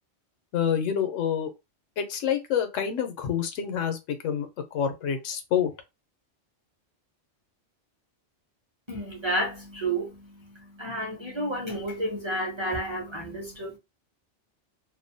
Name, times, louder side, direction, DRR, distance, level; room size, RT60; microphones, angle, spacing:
voice 1, 0.5-1.5 2.0-5.7, left 8 dB, 90° left, 1.0 m, -27 dB
voice 2, 8.9-10.3 10.8-13.8, right 1 dB, 30° right, 0.6 m, -31 dB
2.6 x 2.1 x 2.6 m
omnidirectional pair, 1.2 m